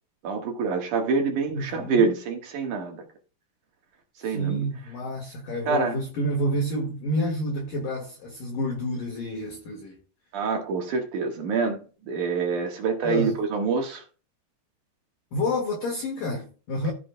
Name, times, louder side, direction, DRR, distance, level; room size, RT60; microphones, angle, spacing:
voice 1, 0.2-3.0 4.2-4.6 5.7-6.0 10.3-11.8 12.1-14.0, right 5 dB, 60° right, 2.2 m, -26 dB
voice 2, 1.5-2.1 4.2-10.0 13.0-13.4 15.3-16.9, equal, 60° left, 2.6 m, -29 dB
15.0 x 6.9 x 2.2 m
omnidirectional pair, 5.5 m